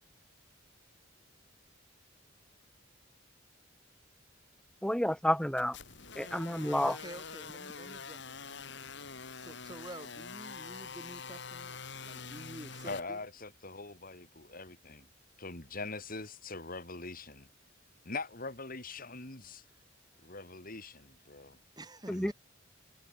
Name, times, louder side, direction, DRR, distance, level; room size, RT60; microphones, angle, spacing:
voice 1, 4.8-5.8 6.1-6.9 22.1-22.3, equal, 5° left, 1.7 m, -30 dB
sound 1, 5.6-13.0, left 5 dB, 60° left, 4.8 m, -45 dB
voice 2, 6.8-8.8 9.4-13.2 21.8-22.3, right 1 dB, 20° right, 4.0 m, -49 dB
voice 3, 12.8-15.1 15.4-17.5 18.0-19.6 20.2-21.6 22.1-22.3, left 3 dB, 45° left, 4.9 m, -42 dB
head